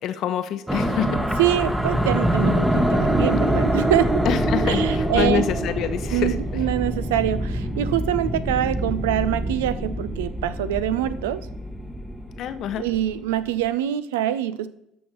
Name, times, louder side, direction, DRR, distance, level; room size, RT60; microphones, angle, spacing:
voice 1, 0.0-1.2 4.2-6.6 12.4-12.8, left 9 dB, 55° left, 11 dB, 0.7 m, -26 dB
sound 1, 0.7-13.3, right 1 dB, 5° right, 0.9 m, -25 dB
voice 2, 1.4-4.1 4.6-5.4 6.1-11.4 12.8-14.7, right 12 dB, 75° right, 14 dB, 0.5 m, -24 dB
13.0 x 5.5 x 3.0 m, 0.79 s
hypercardioid pair, 65°, 0 cm